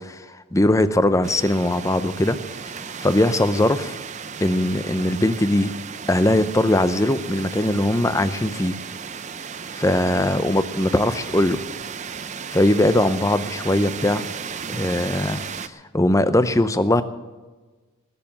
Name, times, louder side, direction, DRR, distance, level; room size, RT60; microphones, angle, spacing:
voice 1, 0.0-2.4 2.6-2.7 3.0-4.0 4.4-5.7 6.1-8.8 9.8-11.6 12.5-14.2 14.7-17.0, left 1 dB, 15° left, 11 dB, 0.6 m, -20 dB
sound 1, 1.2-15.7, right 6 dB, 35° right, 0.5 m, -35 dB
19.5 x 6.8 x 8.6 m, 1.3 s
head